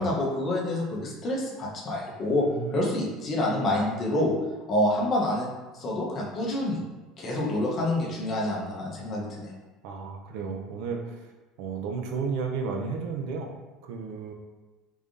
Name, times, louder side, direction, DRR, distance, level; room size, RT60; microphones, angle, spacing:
voice 1, 0.0-4.3 4.7-5.5 5.8-6.8 7.2-9.5, left 1 dB, 35° left, -3 dB, 0.8 m, -27 dB
voice 2, 2.4-2.8 9.8-11.3 11.6-13.5 13.8-14.3, right 5 dB, 75° right, 2 dB, 0.5 m, -33 dB
3.5 x 3.4 x 2.6 m, 1.2 s
cardioid pair, 140°, 0 cm